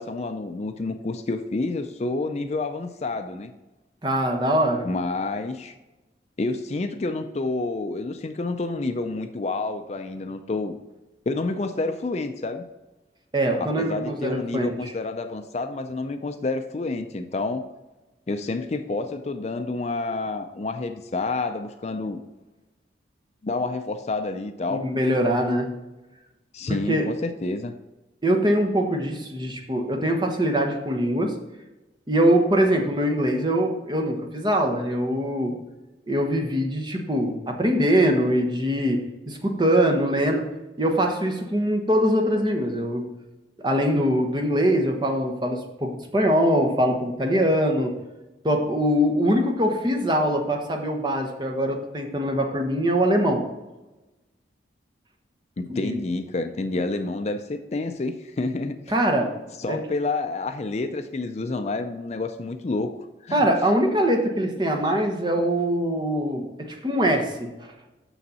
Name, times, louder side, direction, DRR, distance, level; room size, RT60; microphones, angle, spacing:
voice 1, 0.0-3.5 4.8-5.8 6.4-10.8 11.3-12.6 13.6-17.6 18.3-22.2 23.4-24.9 26.5-27.7 55.6-58.9 59.6-63.5, left 3 dB, 35° left, 8 dB, 0.4 m, -29 dB
voice 2, 4.0-4.9 13.3-14.9 24.7-25.7 26.9-27.1 28.2-31.3 32.1-35.5 36.1-40.4 40.8-43.0 43.6-47.9 48.4-53.4 55.7-56.0 58.9-59.3 59.7-59.8 63.3-67.7, equal, 25° right, 3 dB, 1.0 m, -23 dB
7.0 x 6.3 x 4.1 m, 1.1 s
head